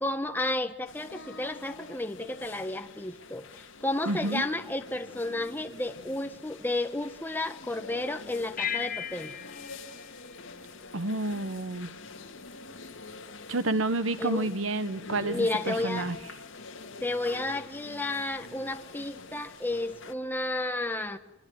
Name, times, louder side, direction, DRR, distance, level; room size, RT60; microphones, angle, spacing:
voice 1, 0.0-9.3 14.2-14.5 15.2-16.1 17.0-21.2, left 2 dB, 10° left, 1.4 m, -32 dB
sound 1, 0.8-20.1, left 3 dB, 65° left, 2.6 m, -46 dB
voice 2, 4.1-4.4 10.9-11.9 13.5-16.2, right 2 dB, 75° right, 1.2 m, -29 dB
sound 2, 8.6-11.3, left 9 dB, 40° left, 1.4 m, -37 dB
26.0 x 23.0 x 9.3 m
head